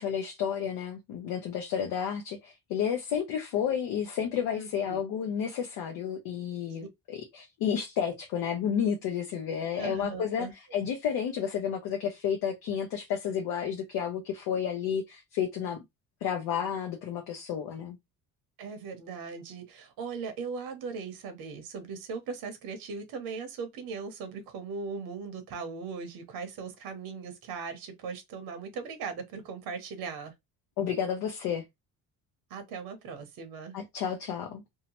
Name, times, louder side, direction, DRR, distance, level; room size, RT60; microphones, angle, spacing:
voice 1, 0.0-15.8 16.2-18.0 30.8-31.6 33.7-34.6, left 8 dB, 75° left, 0.7 m, -31 dB
voice 2, 4.6-5.0 9.8-10.8 18.6-30.3 32.5-33.8, right 5 dB, 75° right, 0.8 m, -39 dB
2.7 x 2.1 x 2.9 m
cardioid pair, 105°, 36 cm